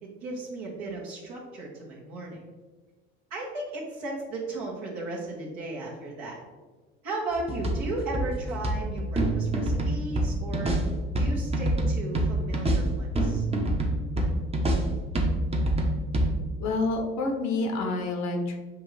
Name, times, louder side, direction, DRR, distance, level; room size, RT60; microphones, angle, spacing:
voice 1, 0.0-2.4 3.3-6.4 7.0-10.8 11.2-13.4, right 2 dB, 65° right, -5 dB, 1.2 m, -35 dB
sound 1, 7.3-16.3, right 1 dB, 20° right, 0.9 m, -26 dB
voice 2, 16.6-18.6, left 2 dB, 60° left, 3 dB, 0.9 m, -28 dB
6.0 x 2.5 x 3.3 m, 1.3 s
hypercardioid pair, 65°, 30 cm